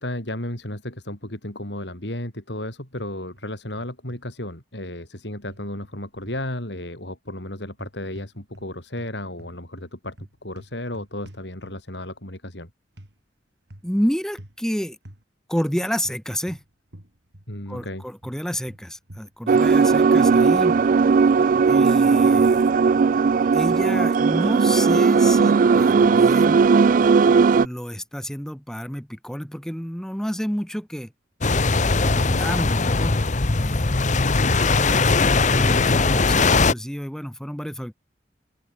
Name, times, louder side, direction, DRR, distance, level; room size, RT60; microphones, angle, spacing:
voice 1, 0.0-10.2 10.4-12.7 17.5-18.0, left 1 dB, 75° left, 7.7 m, -33 dB
sound 1, 3.0-3.5 3.8-4.2 5.5-6.5 7.7-8.7 9.0-12.0 13.0-13.1 13.7-14.0 14.4-14.6 15.0-15.2 16.0-17.5 17.8-19.7, right 1 dB, 75° right, 4.1 m, -47 dB
voice 2, 13.8-15.0 15.5-16.6 17.7-20.8 21.7-22.7 23.5-26.7 27.6-31.1 31.8-33.2 33.5-33.9 34.6-37.9, equal, 5° left, 1.3 m, -30 dB
sound 2, 19.5-27.7, right 5 dB, 50° right, 0.3 m, -17 dB
sound 3, 31.4-36.7, left 3 dB, 45° left, 1.0 m, -20 dB
head